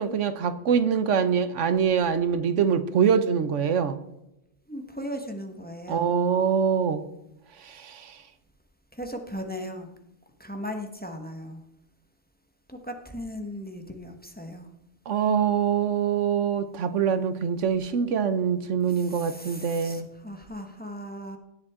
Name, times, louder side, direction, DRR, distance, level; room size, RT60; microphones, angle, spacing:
voice 1, 0.0-4.0 5.9-7.0 7.6-8.2 15.1-20.1, right 7 dB, 85° right, 12 dB, 1.2 m, -24 dB
voice 2, 4.7-6.1 8.9-9.9 10.4-11.6 12.7-14.7 18.9-21.4, equal, 10° left, 4 dB, 1.3 m, -37 dB
17.5 x 7.8 x 3.7 m, 0.85 s
omnidirectional pair, 1.2 m